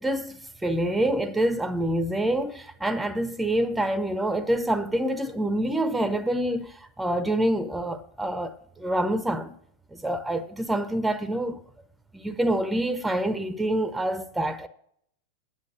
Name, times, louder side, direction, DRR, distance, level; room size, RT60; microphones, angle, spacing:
voice 1, 0.0-9.5 9.9-11.6 12.1-14.7, right 1 dB, 5° right, 0.6 m, -26 dB
8.5 x 8.0 x 5.6 m
figure-of-eight pair, 90°, 0 cm